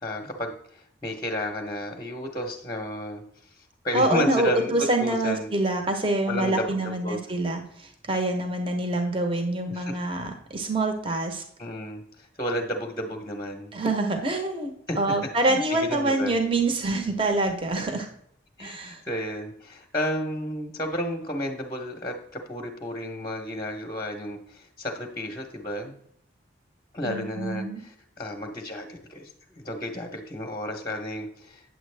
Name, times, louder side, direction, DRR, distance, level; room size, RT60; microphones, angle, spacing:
voice 1, 0.0-3.2 3.5-5.5 6.3-7.2 9.7-10.0 11.6-13.7 14.9-15.0 15.4-16.4 18.6-25.9 26.9-31.6, equal, 20° left, 2 dB, 0.8 m, -32 dB
voice 2, 3.9-11.4 13.7-18.1 18.6-19.0 27.0-27.8, right 2 dB, 25° right, 4 dB, 0.9 m, -26 dB
9.1 x 7.3 x 3.3 m, 0.68 s
head